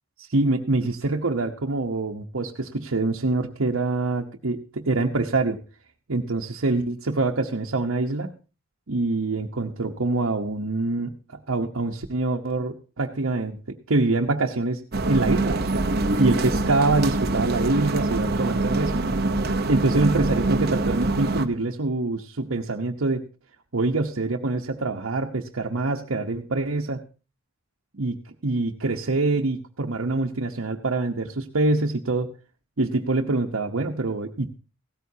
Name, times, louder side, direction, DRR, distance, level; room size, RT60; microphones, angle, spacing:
voice 1, 0.2-5.6 6.1-8.3 8.9-14.8 15.1-15.9 16.2-19.0 19.7-23.2 23.7-27.0 27.9-28.2 28.4-32.3 32.8-34.5, right 2 dB, 85° right, 0 dB, 1.0 m, -25 dB
sound 1, 14.9-21.5, right 2 dB, 50° right, 0.9 m, -24 dB
16.5 x 14.0 x 2.8 m, 0.34 s
head